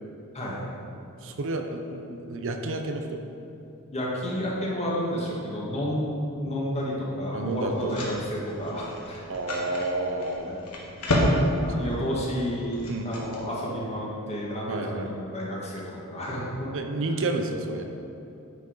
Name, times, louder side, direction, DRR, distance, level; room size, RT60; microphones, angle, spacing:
voice 1, 1.2-3.2 7.3-8.0 9.3-10.6 11.7-12.0 12.9-13.1 14.7-15.1 16.7-17.8, right 2 dB, 60° right, 5 dB, 0.6 m, -30 dB
voice 2, 3.9-9.2 9.5-9.7 10.5-10.6 11.6-16.7, equal, 30° left, -5 dB, 1.7 m, -31 dB
sound 1, 7.5-13.4, equal, 85° left, 1.5 m, -30 dB
10.0 x 4.8 x 4.7 m, 2.7 s
head